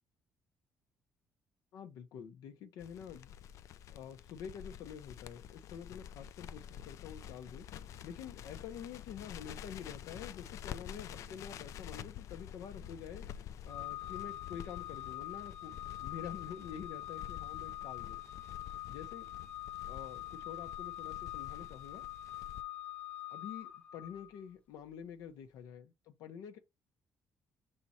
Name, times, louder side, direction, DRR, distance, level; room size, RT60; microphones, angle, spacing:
voice 1, 1.7-3.3 3.9-7.7 8.0-13.2 13.6-15.7 16.0-18.2 18.9-19.3 19.9-22.0 23.3-26.6, left 8 dB, 85° left, 1.0 m, -47 dB
Crackle, 2.8-22.6, left 10 dB, 65° left, 0.4 m, -49 dB
Organ, 13.7-24.4, left 14 dB, 25° left, 0.9 m, -44 dB
7.6 x 2.9 x 4.3 m
cardioid pair, 150°, 6 cm